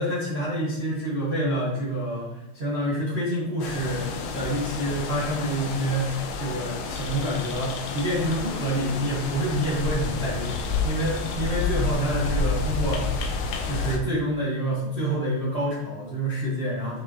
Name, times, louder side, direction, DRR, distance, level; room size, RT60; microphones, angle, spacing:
voice 1, 0.0-10.6 10.8-13.3 13.6-17.0, right 1 dB, 45° right, -8 dB, 0.7 m, -27 dB
sound 1, 3.6-14.0, left 4 dB, 75° left, 2.5 m, -30 dB
8.9 x 6.9 x 3.2 m, 0.94 s
omnidirectional pair, 4.8 m